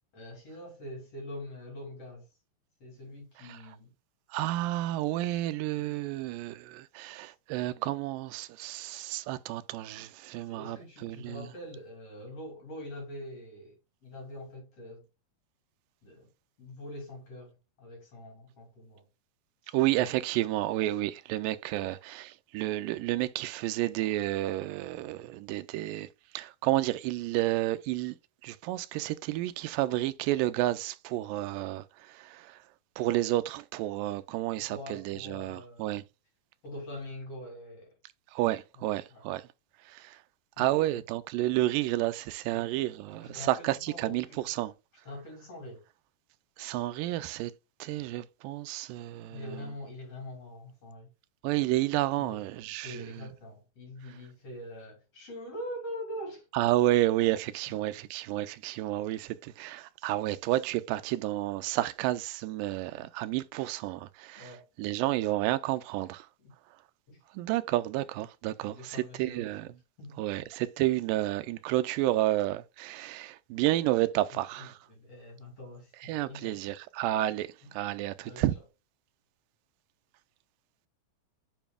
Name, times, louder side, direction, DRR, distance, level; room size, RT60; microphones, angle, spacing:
voice 1, 0.1-2.3 2.8-3.9 5.8-5.9 10.4-13.8 14.0-15.0 16.0-16.3 16.6-19.1 21.8-22.0 34.7-36.0 36.6-37.9 38.7-39.2 40.6-41.0 42.5-42.7 43.2-44.4 45.1-45.8 49.3-51.1 52.2-52.4 52.8-56.5 57.7-57.8 64.4-64.6 66.4-66.5 67.1-67.2 68.6-69.5 70.0-70.2 74.6-76.6 77.6-77.7 78.2-78.4, left 1 dB, 45° left, 3.5 m, -44 dB
voice 2, 4.3-11.5 19.7-28.2 28.4-32.6 33.0-36.0 38.3-39.5 39.8-40.2 40.6-44.7 46.6-47.5 47.8-49.7 51.4-53.3 56.5-66.3 67.3-69.7 70.2-74.8 76.0-78.6, right 16 dB, 80° right, 2.1 m, -31 dB
9.1 x 5.2 x 2.4 m
omnidirectional pair, 4.1 m